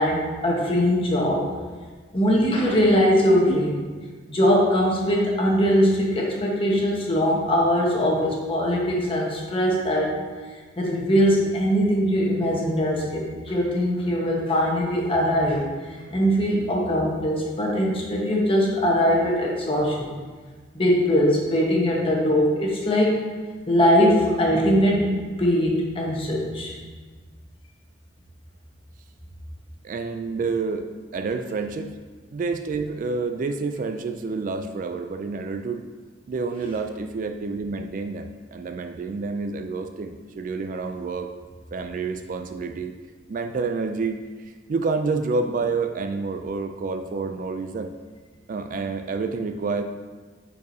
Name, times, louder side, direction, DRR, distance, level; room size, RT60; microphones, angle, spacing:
voice 1, 0.0-1.5 2.1-3.7 4.3-10.2 10.8-15.6 15.9-20.1 20.7-23.2 23.7-26.7, equal, 30° left, -2 dB, 1.1 m, -21 dB
voice 2, 29.8-32.0 32.3-35.8 36.3-41.3 41.7-42.9 43.3-44.2 44.7-47.9 48.5-49.8, right 4 dB, 45° right, 6 dB, 0.3 m, -28 dB
9.4 x 4.6 x 2.7 m, 1.4 s
head